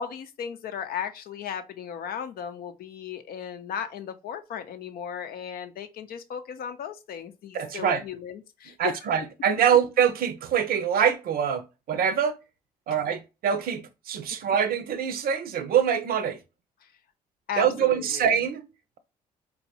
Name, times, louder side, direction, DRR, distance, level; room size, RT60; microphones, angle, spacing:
voice 1, 0.0-8.9 12.9-13.0 16.8-16.9 17.5-18.3, left 8 dB, 55° left, 0.6 m, -36 dB
voice 2, 7.5-8.0 8.8-12.4 12.9-16.4 17.6-18.7, right 8 dB, 55° right, 0.6 m, -24 dB
4.3 x 2.3 x 2.7 m
hypercardioid pair, 45°, 19 cm